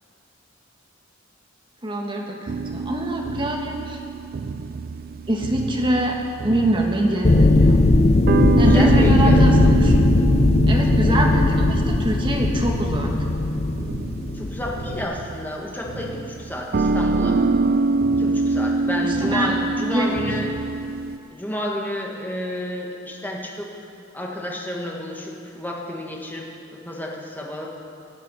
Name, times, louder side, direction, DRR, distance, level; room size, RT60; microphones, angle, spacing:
voice 1, 1.8-4.0 5.3-6.2 6.4-7.8 8.6-9.9 10.7-13.1 19.2-19.6 19.9-20.1, right 1 dB, 25° right, 0 dB, 1.6 m, -24 dB
sound 1, 2.5-21.2, right 4 dB, 50° right, 0.4 m, -26 dB
sound 2, 7.2-15.0, left 2 dB, 35° left, 0.5 m, -18 dB
voice 2, 8.7-9.4 14.3-17.4 18.2-20.5 21.3-23.7 24.1-27.7, left 1 dB, 10° left, -1 dB, 1.6 m, -31 dB
16.0 x 8.3 x 6.3 m, 2.7 s
head